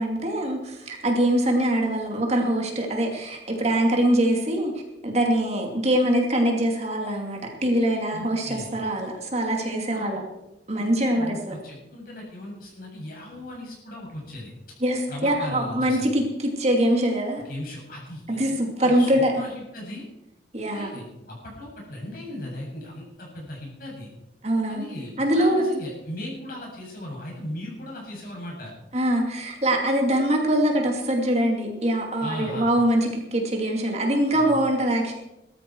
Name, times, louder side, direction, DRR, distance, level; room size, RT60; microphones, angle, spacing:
voice 1, 0.0-4.7 5.0-10.2 10.7-11.5 14.8-17.4 18.3-19.3 20.5-21.0 24.4-24.8 25.2-25.6 28.9-35.1, right 1 dB, 40° right, 1 dB, 2.7 m, -23 dB
voice 2, 8.1-8.7 9.9-10.2 10.8-14.5 15.1-16.1 17.4-20.0 20.7-24.1 24.7-28.7 32.2-32.7 34.3-34.6, left 1 dB, 55° left, -2 dB, 7.8 m, -37 dB
18.5 x 13.5 x 4.8 m, 0.90 s
head